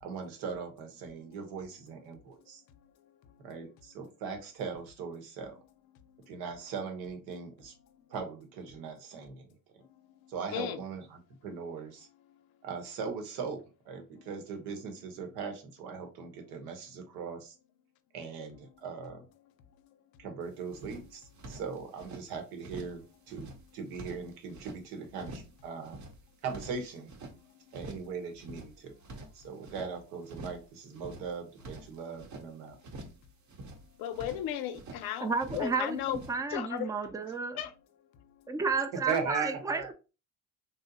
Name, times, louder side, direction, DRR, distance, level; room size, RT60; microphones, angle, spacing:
voice 1, 0.0-2.6 3.4-5.6 6.3-7.7 8.1-9.6 10.3-12.1 12.6-17.5 18.1-19.2 20.2-26.0 26.4-27.1 27.7-29.0 29.3-32.8 39.1-39.9, right 5 dB, 85° right, 0.9 m, -39 dB
sound 1, 20.4-20.5 20.7-22.2 22.6-23.0 23.3-24.8 25.2-25.6 25.8-27.4 27.7-28.1 28.4-29.9 30.3-30.7 30.9-32.5 32.8-33.2 33.5-35.0 35.4-35.8 36.0-36.3, right 2 dB, 50° right, 0.8 m, -46 dB
voice 2, 34.0-36.2 36.5-36.9 37.6-37.7, left 11 dB, 70° left, 0.6 m, -35 dB
voice 3, 35.2-37.5 38.5-39.9, right 4 dB, 10° right, 0.4 m, -32 dB
2.7 x 2.0 x 3.9 m
supercardioid pair, 75°, 37 cm